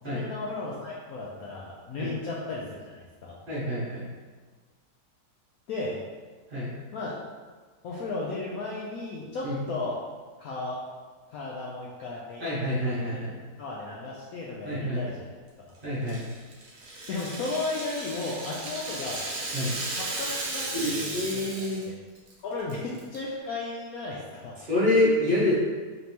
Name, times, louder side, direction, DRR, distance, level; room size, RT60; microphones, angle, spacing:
voice 1, 0.0-3.4 5.7-6.0 6.9-7.1 7.8-10.0 10.4-10.8 11.3-12.4 13.1-13.2 13.6-15.3 17.1-19.2 20.0-21.6 21.9-22.0 22.4-24.6, left 3 dB, 70° left, -5 dB, 0.9 m, -35 dB
voice 2, 3.5-4.0 6.5-6.7 9.4-9.5 12.4-13.4 14.6-15.1 15.8-16.2 19.5-19.8 20.7-21.8 24.6-25.5, left 1 dB, 35° right, -10 dB, 1.2 m, -27 dB
Rattle (instrument), 16.1-21.9 22.2-22.3 22.7-23.2, right 2 dB, 50° right, 0.9 m, -35 dB
4.2 x 3.3 x 2.8 m, 1.4 s
omnidirectional pair, 1.9 m